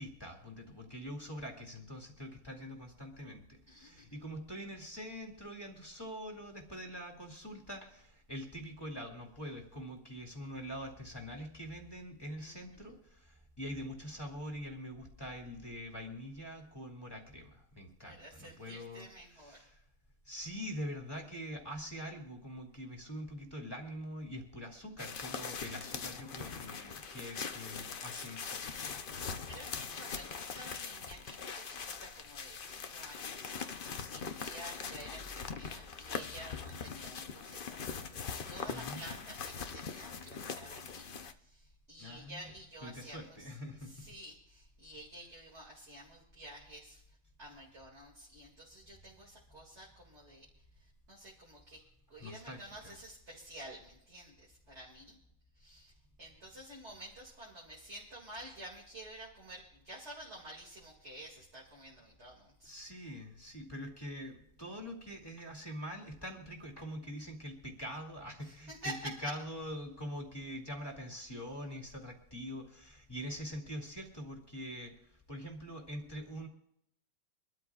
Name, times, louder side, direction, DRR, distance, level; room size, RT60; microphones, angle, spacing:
voice 1, 0.0-19.1 19.3-19.8 20.3-28.6 38.7-39.0 42.0-42.4 42.8-44.0 52.2-52.9 62.6-68.9 69.2-74.9 75.3-76.5, equal, 15° left, 0 dB, 2.2 m, -44 dB
voice 2, 3.7-4.1 12.4-12.9 18.0-19.7 29.0-43.5 43.8-47.0 47.4-50.5 50.8-51.8 52.1-55.2 55.6-55.9 56.2-62.7 68.4-69.3, right 1 dB, 35° right, -3 dB, 2.6 m, -50 dB
sound 1, 25.0-41.3, left 6 dB, 85° left, 0.4 m, -42 dB
24.5 x 13.0 x 2.4 m, 0.77 s
omnidirectional pair, 2.0 m